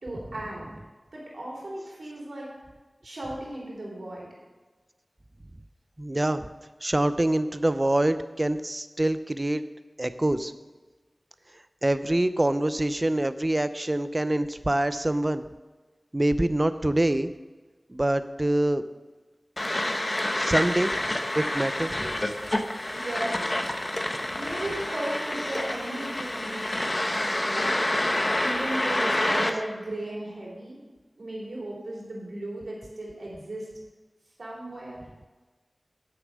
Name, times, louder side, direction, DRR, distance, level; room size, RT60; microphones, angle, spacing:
voice 1, 0.0-0.6 1.1-2.5 3.0-4.3 22.9-23.6 24.4-28.1 28.4-30.8 31.2-33.7 34.4-35.0, right 1 dB, 90° right, -4 dB, 3.1 m, -36 dB
voice 2, 6.0-6.5 6.8-9.6 10.0-10.5 11.8-15.5 16.1-17.3 17.9-18.8 20.3-20.9 21.3-22.2, right 1 dB, 30° right, 12 dB, 0.6 m, -25 dB
sound 1, 19.6-29.5, left 1 dB, 35° left, 0.9 m, -28 dB
8.8 x 6.8 x 6.4 m, 1.2 s
wide cardioid pair, 55°, 0 cm